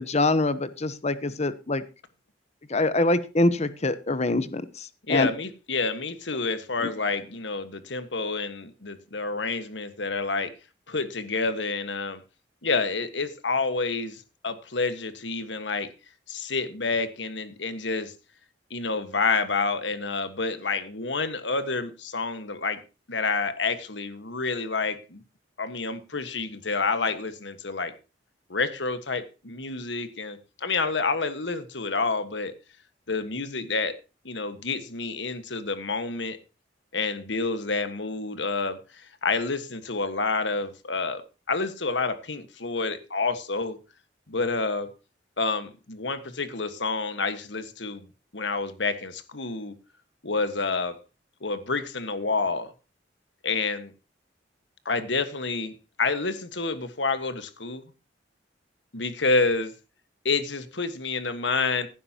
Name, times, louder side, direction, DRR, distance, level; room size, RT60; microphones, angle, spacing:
voice 1, 0.0-1.8 2.7-5.3 6.8-6.9, left 2 dB, 35° left, 1.0 m, -25 dB
voice 2, 5.1-10.5 10.9-12.2 12.6-15.9 16.3-18.1 18.7-22.8 23.1-25.2 25.6-27.9 28.5-32.5 33.1-33.9 34.2-36.4 36.9-41.2 41.5-43.8 44.3-44.9 45.4-48.1 48.3-49.7 50.2-51.0 51.4-52.7 53.4-53.9 54.8-57.8 58.9-59.7 60.2-61.9, left 4 dB, 75° left, 1.6 m, -28 dB
16.0 x 10.5 x 2.9 m
head